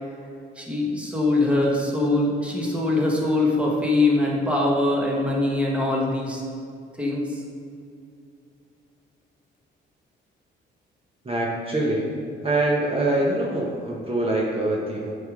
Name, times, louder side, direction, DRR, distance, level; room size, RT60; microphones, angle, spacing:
voice 1, 0.6-6.4 7.0-7.2, left 2 dB, 5° right, -3 dB, 1.4 m, -22 dB
voice 2, 11.2-12.1 12.4-15.1, right 2 dB, 30° right, -3 dB, 1.2 m, -24 dB
7.8 x 3.7 x 5.0 m, 2.4 s
cardioid pair, 90°, 20 cm